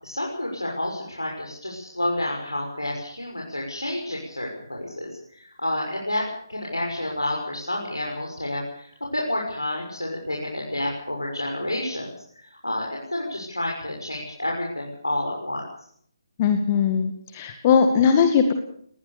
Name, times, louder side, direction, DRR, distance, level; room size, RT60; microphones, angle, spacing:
voice 1, 0.0-6.2 6.5-15.6, left 1 dB, 80° left, -1 dB, 6.3 m, -29 dB
voice 2, 16.4-18.5, left 6 dB, 25° left, 6 dB, 2.0 m, -19 dB
21.0 x 19.5 x 6.9 m, 0.64 s
figure-of-eight pair, 145°, 2 cm